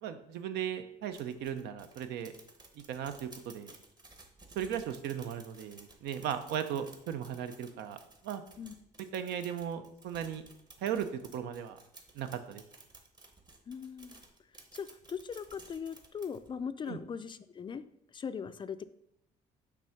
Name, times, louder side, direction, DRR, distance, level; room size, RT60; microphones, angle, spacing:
voice 1, 0.0-2.3 2.9-3.7 4.6-8.0 8.2-8.4 9.1-10.4 10.8-11.1 11.3-11.8 12.1-12.6 16.9-17.0, right 9 dB, 80° right, 9 dB, 0.7 m, -37 dB
sound 1, 1.1-16.5, right 2 dB, 25° right, 1.0 m, -56 dB
voice 2, 13.7-14.2 14.7-17.8 18.1-18.9, left 6 dB, 30° left, 12 dB, 0.3 m, -40 dB
6.0 x 3.4 x 5.7 m, 0.78 s
cardioid pair, 110°, 17 cm